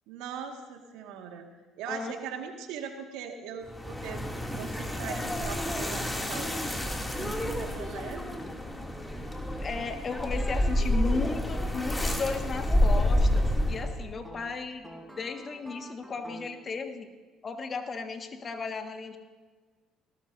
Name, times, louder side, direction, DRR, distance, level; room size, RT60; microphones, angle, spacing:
voice 1, 0.1-1.5 1.8-4.2 4.6-6.5 7.2-8.4, right 7 dB, 75° right, 4 dB, 1.8 m, -40 dB
sound 1, 3.7-14.1, left 1 dB, 15° left, 2.5 m, -29 dB
voice 2, 9.6-14.8 15.1-17.1 17.4-19.2, left 4 dB, 40° left, 6 dB, 1.6 m, -35 dB
sound 2, 11.5-11.7 14.2-16.7, right 1 dB, 5° right, 3.6 m, -47 dB
19.0 x 18.5 x 2.7 m, 1.4 s
hypercardioid pair, 60°, 0 cm